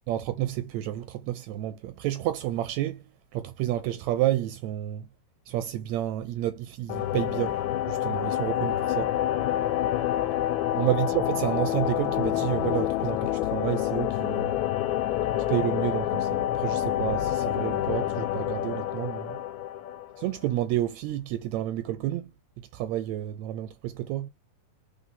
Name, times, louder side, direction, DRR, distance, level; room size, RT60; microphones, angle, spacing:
voice 1, 0.1-3.1 3.3-5.1 5.5-7.6 7.9-9.1 10.8-14.6 15.5-19.4 20.2-22.3 22.6-24.3, right 13 dB, 80° right, 1.8 m, -30 dB
sound 1, 6.9-20.5, left 12 dB, 90° left, 2.0 m, -28 dB
5.1 x 3.8 x 5.6 m
omnidirectional pair, 3.3 m